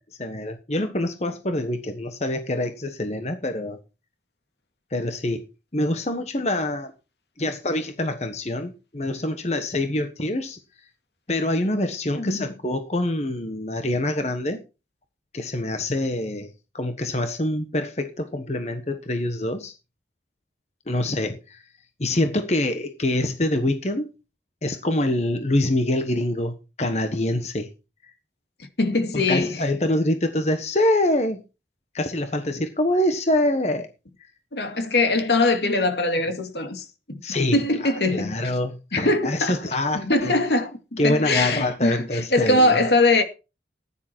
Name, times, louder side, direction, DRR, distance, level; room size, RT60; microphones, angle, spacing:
voice 1, 0.2-3.8 4.9-5.5 5.7-6.9 7.4-10.6 11.3-14.6 15.3-19.7 20.9-21.6 22.0-24.1 24.6-27.7 29.1-31.4 31.9-33.9 37.2-40.4 41.0-42.8, left 1 dB, 40° left, 1.3 m, -25 dB
voice 2, 12.1-12.4 28.6-29.6 34.5-37.2 37.5-38.3 38.9-39.5 39.9-40.8 41.0-43.2, left 2 dB, 75° left, 2.4 m, -22 dB
14.5 x 10.0 x 4.5 m
head